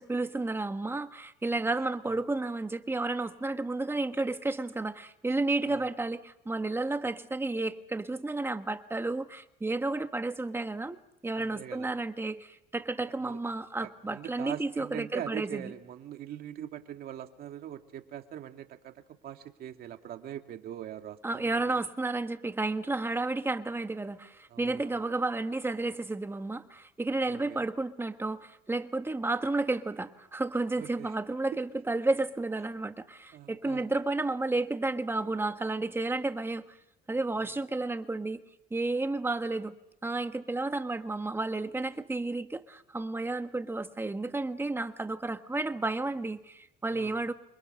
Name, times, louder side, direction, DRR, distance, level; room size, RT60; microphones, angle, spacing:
voice 1, 0.0-11.0 11.2-15.7 21.2-36.8 37.1-38.4 38.7-39.8 40.0-47.3, right 2 dB, 15° right, 8 dB, 1.5 m, -32 dB
voice 2, 11.3-11.9 13.2-13.4 13.8-21.8 24.5-25.1 27.3-27.7 30.8-31.1 33.3-33.9 37.4-37.5 46.9-47.2, right 11 dB, 65° right, 6 dB, 2.1 m, -42 dB
28.0 x 23.0 x 6.7 m, 0.86 s
cardioid pair, 110°, 17 cm